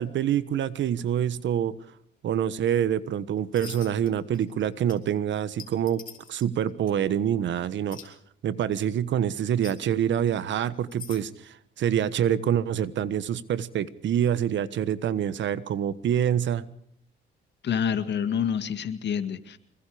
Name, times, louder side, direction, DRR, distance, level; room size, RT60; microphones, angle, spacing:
voice 1, 0.0-1.7 2.2-6.0 6.3-8.1 8.4-16.6, right 9 dB, 70° right, 16 dB, 1.3 m, -26 dB
sound 1, 3.5-4.1 4.3-4.6 4.9-5.0 5.6-6.4 6.9-7.0 7.9-8.1 9.5-9.7 10.7-11.3, left 7 dB, 45° left, 4.6 m, -43 dB
voice 2, 17.6-19.6, left 7 dB, 60° left, 10 dB, 2.1 m, -27 dB
25.5 x 21.5 x 5.1 m, 0.66 s
cardioid pair, 90°, 20 cm